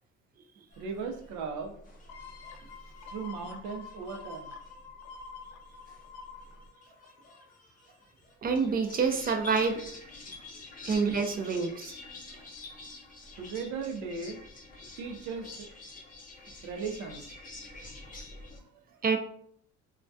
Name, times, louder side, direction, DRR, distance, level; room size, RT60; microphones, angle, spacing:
sound 1, 0.7-18.6, left 2 dB, 30° left, 0.6 m, -48 dB
voice 1, 0.8-1.7 3.1-4.6 13.4-14.4 15.0-15.7 16.6-17.3 18.6-18.8, right 5 dB, 85° right, 4 dB, 0.5 m, -37 dB
sound 2, 2.1-7.6 8.0-8.1, left 5 dB, 80° left, 0.4 m, -47 dB
voice 2, 8.4-9.8 10.9-11.9 19.0-19.2, right 5 dB, 30° right, 5 dB, 0.4 m, -27 dB
2.2 x 2.1 x 2.6 m, 0.63 s
cardioid pair, 100°, 29 cm